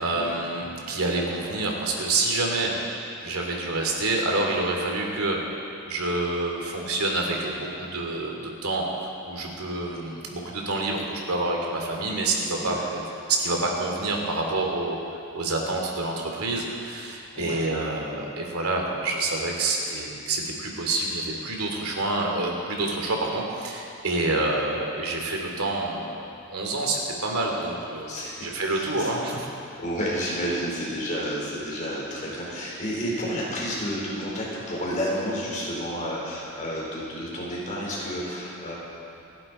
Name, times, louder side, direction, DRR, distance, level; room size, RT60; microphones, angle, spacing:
voice 1, 0.0-2.8 3.2-5.4 5.8-15.0 15.3-26.2 26.5-28.1 28.4-29.5, right 2 dB, 80° right, 0 dB, 2.8 m, -27 dB
voice 2, 12.5-12.8 17.3-17.6 24.2-24.5 28.1-29.1 29.8-38.7, equal, 35° left, -5 dB, 4.2 m, -31 dB
29.0 x 11.0 x 4.4 m, 2.6 s
head